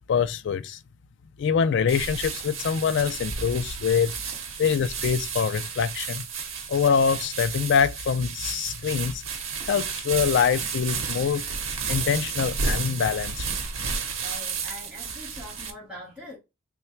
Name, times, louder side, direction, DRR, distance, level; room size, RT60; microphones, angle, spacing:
voice 1, 0.1-0.8 1.4-4.1 4.6-6.2 6.7-9.2 9.6-11.4 11.9-13.5, left 6 dB, 60° left, 0.3 m, -24 dB
sound 1, 1.9-15.7, right 5 dB, 75° right, 0.8 m, -32 dB
voice 2, 14.2-16.4, equal, 5° right, 1.3 m, -43 dB
3.2 x 2.2 x 4.3 m
head